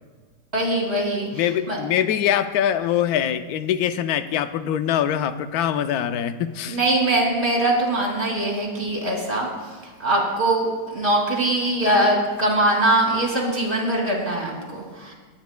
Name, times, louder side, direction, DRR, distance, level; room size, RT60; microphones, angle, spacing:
voice 1, 0.5-1.8 6.7-9.5 10.0-15.1, right 1 dB, 30° right, -2 dB, 2.9 m, -22 dB
voice 2, 1.3-6.8, left 10 dB, 70° left, 10 dB, 1.1 m, -23 dB
26.5 x 9.4 x 2.2 m, 1.4 s
omnidirectional pair, 1.8 m